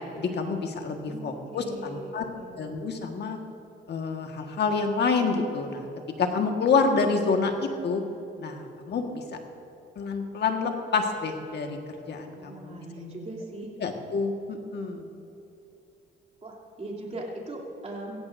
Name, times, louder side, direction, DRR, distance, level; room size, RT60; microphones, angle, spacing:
voice 1, 0.1-2.3 2.5-3.4 3.9-5.9 6.2-8.0 8.4-9.2 10.0-11.8 12.1-12.8 13.8-15.0, left 4 dB, 60° left, 4 dB, 1.6 m, -27 dB
voice 2, 1.1-2.5 12.3-13.7 16.4-18.2, right 2 dB, 30° right, -3 dB, 3.0 m, -39 dB
16.5 x 16.0 x 2.6 m, 2.9 s
cardioid pair, 90°, 20 cm